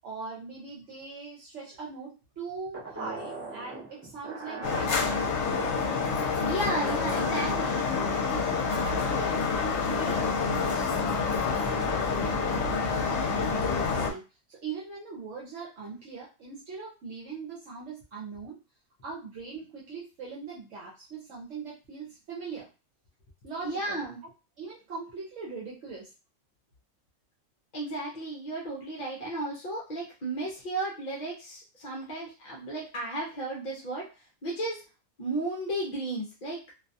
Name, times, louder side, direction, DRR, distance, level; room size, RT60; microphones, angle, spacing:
voice 1, 0.0-5.8 6.8-6.9 7.6-7.7 8.0-8.2 8.7-18.6 19.0-22.7 23.4-24.0 24.6-26.1, right 4 dB, 70° right, -4 dB, 1.0 m, -41 dB
sound 1, 2.7-7.9, right 3 dB, 20° right, 0.5 m, -41 dB
sound 2, 4.6-14.1, left 5 dB, 65° left, 0.9 m, -28 dB
voice 2, 6.4-7.9 23.6-24.2 27.7-34.8 35.2-36.6, right 1 dB, 45° left, -3 dB, 0.6 m, -34 dB
2.5 x 2.2 x 2.6 m, 0.31 s
omnidirectional pair, 1.3 m